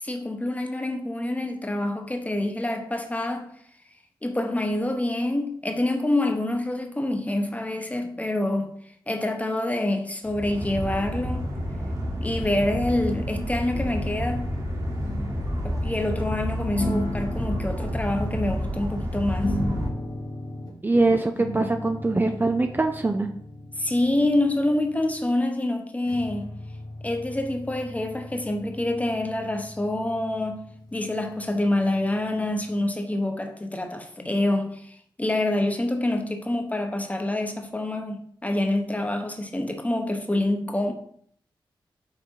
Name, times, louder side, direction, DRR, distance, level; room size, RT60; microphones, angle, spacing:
voice 1, 0.0-3.5 4.2-8.8 9.1-11.5 12.2-14.6 15.6-19.6 23.8-26.5 27.0-30.7 30.9-40.9, left 1 dB, 15° left, 0.9 m, -26 dB
sound 1, 10.2-19.9, equal, 40° right, 1.4 m, -29 dB
sound 2, 14.6-14.7 15.0-16.4 16.8-18.8 19.4-20.8 21.4-25.3 26.0-32.5, left 1 dB, 50° left, 1.2 m, -37 dB
voice 2, 20.8-23.3, right 3 dB, 25° right, 0.5 m, -23 dB
5.6 x 3.8 x 4.7 m
wide cardioid pair, 75°, 9 cm